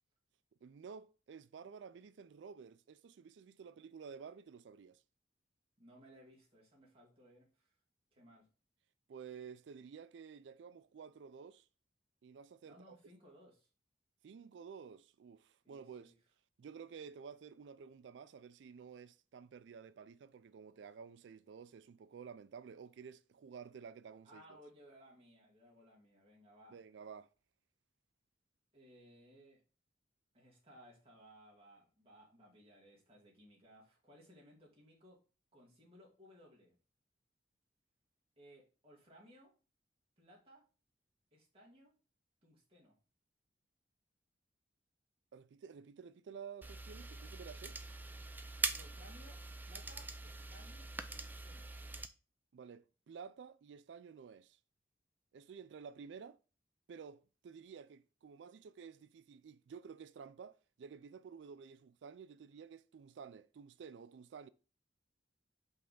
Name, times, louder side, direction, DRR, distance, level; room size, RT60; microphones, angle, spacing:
voice 1, 0.6-5.0 9.1-11.7 12.2-13.0 14.2-16.1 16.6-24.4 26.7-27.3 45.3-47.8 52.5-54.6 55.3-56.4 56.9-64.5, right 6 dB, 90° right, 0.4 m, -52 dB
voice 2, 5.8-7.7 8.1-8.5 12.6-13.7 15.6-16.1 24.2-26.8 28.7-29.6 30.3-35.2 35.5-36.8 38.4-39.5 40.2-40.7 41.3-41.9 42.4-43.0 48.7-51.7, equal, 30° right, 2.3 m, -61 dB
sound 1, 46.6-52.1, right 3 dB, 10° right, 0.3 m, -43 dB
5.4 x 3.4 x 5.3 m
head